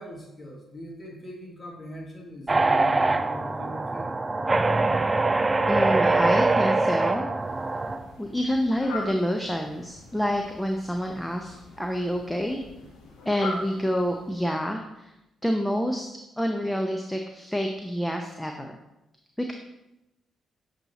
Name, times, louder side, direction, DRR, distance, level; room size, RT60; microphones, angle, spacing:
voice 1, 0.0-4.1, left 1 dB, 40° left, 0 dB, 1.4 m, -40 dB
sound 1, 2.5-8.0, right 3 dB, 30° right, 0.3 m, -23 dB
voice 2, 5.7-7.3 8.2-12.6 13.3-15.1 15.4-16.1 16.4-18.8 19.4-19.5, equal, 5° left, 3 dB, 0.6 m, -28 dB
Fowl, 7.3-14.7, left 3 dB, 80° left, 1.0 m, -42 dB
8.0 x 2.9 x 4.1 m, 0.90 s
hypercardioid pair, 45°, 0 cm